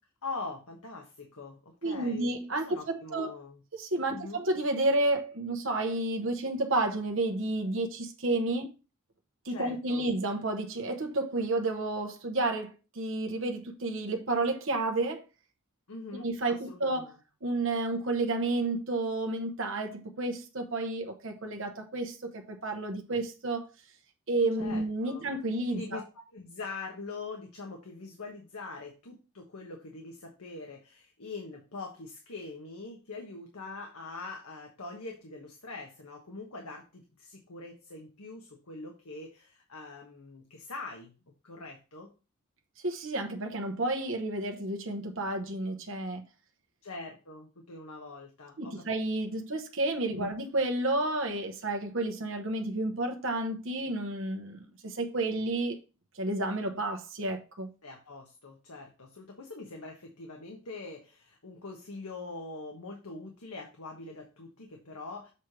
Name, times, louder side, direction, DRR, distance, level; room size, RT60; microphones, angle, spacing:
voice 1, 0.2-3.6 4.1-4.4 9.5-10.1 15.9-17.2 24.6-25.3 25.7-26.0 26.3-41.1 41.4-42.1 46.8-48.9 50.1-50.3 57.8-65.3, left 3 dB, 90° left, 1.3 m, -43 dB
voice 2, 1.8-3.3 3.8-8.7 9.4-15.2 16.2-17.1 17.4-23.7 24.3-26.0 42.8-46.2 48.6-55.8 56.1-57.7, right 2 dB, 60° right, 1.0 m, -31 dB
7.3 x 3.3 x 5.9 m
head